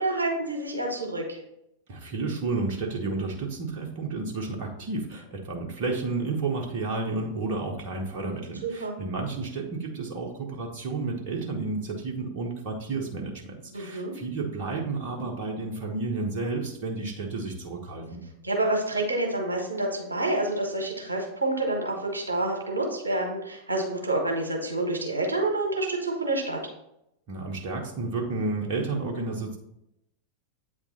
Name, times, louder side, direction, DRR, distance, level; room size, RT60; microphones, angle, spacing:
voice 1, 0.0-1.4 8.6-8.9 13.7-14.1 18.4-26.6, right 2 dB, 80° right, 1 dB, 1.2 m, -28 dB
voice 2, 1.9-18.2 27.3-29.6, right 3 dB, 45° right, 0 dB, 1.0 m, -31 dB
8.3 x 3.2 x 3.9 m, 0.82 s
figure-of-eight pair, 90°, 0 cm